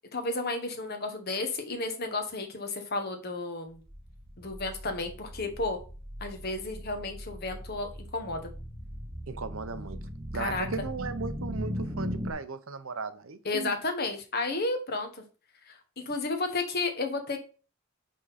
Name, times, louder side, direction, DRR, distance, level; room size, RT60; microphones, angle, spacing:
voice 1, 0.1-3.8 4.4-5.8 6.2-8.5 10.3-10.7 13.4-15.2 15.7-17.4, left 3 dB, 45° left, 1.3 m, -32 dB
sound 1, 3.9-12.3, equal, 15° right, 0.9 m, -39 dB
voice 2, 9.3-10.0 10.3-13.7, right 4 dB, 65° right, 0.7 m, -37 dB
9.9 x 3.8 x 4.2 m
head